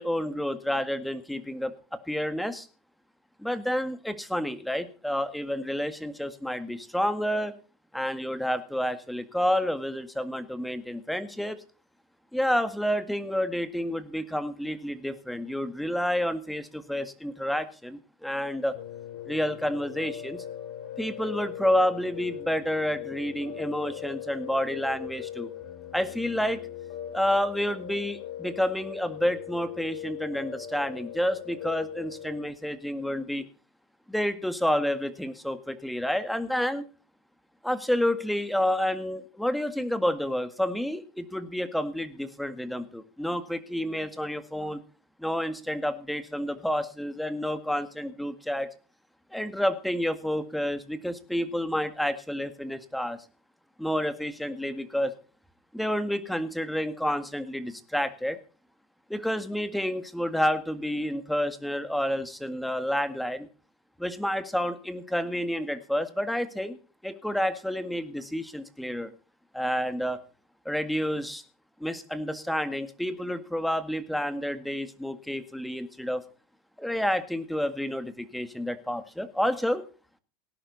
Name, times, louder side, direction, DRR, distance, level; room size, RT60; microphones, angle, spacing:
voice 1, 0.0-2.7 3.4-7.5 7.9-11.6 12.3-18.8 19.3-20.4 21.0-25.5 25.9-26.6 27.1-33.5 34.1-36.9 37.6-44.8 45.2-48.7 49.3-53.2 53.8-55.1 55.7-58.4 59.1-63.5 64.0-66.8 67.0-69.1 69.5-70.2 70.7-71.4 71.8-76.2 76.8-79.8, equal, ahead, 10 dB, 1.8 m, -29 dB
Piano, 18.7-32.5, left 10 dB, 70° left, 4.5 m, -40 dB
18.0 x 11.0 x 4.1 m, 0.36 s
supercardioid pair, 110°, 0 cm